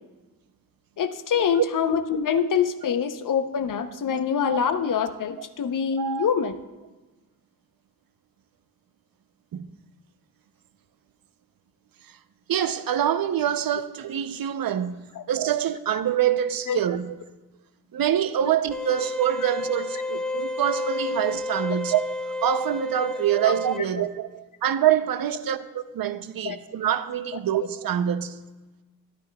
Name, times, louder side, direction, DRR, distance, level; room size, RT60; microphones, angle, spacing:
voice 1, 1.0-6.6 15.2-15.3 16.7-16.8 23.4-23.8 26.4-26.6, left 7 dB, 60° left, 0.7 m, -25 dB
voice 2, 6.0-6.3 9.5-9.7 12.5-17.2 17.9-22.0 22.4-28.4, right 10 dB, 75° right, 0.6 m, -25 dB
sound 1, 18.7-23.8, left 2 dB, ahead, 0.6 m, -31 dB
13.0 x 11.0 x 2.2 m
wide cardioid pair, 105°, 35 cm